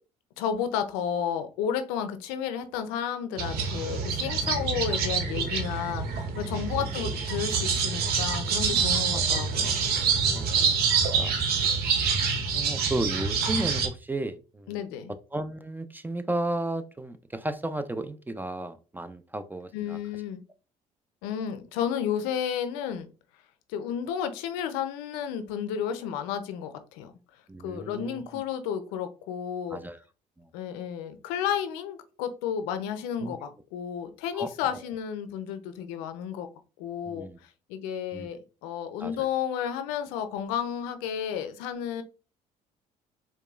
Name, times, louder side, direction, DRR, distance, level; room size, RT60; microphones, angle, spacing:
voice 1, 0.4-9.8 14.7-15.1 19.7-20.4 21.2-23.1 23.7-27.1 27.6-29.8 30.5-36.5 36.8-37.3 37.7-42.0, left 8 dB, 85° left, 10 dB, 0.5 m, -32 dB
sound 1, 3.4-13.9, right 5 dB, 70° right, 0.7 m, -26 dB
voice 2, 10.3-10.8 11.2-11.4 12.5-14.8 15.3-20.0 27.5-28.4 29.7-30.0 30.4-30.5 33.2-33.3 34.3-34.5 37.1-37.4 38.1-38.3 39.0-39.1, right 2 dB, 10° right, 11 dB, 0.4 m, -34 dB
4.7 x 2.2 x 2.3 m, 0.34 s
supercardioid pair, 70°, 16 cm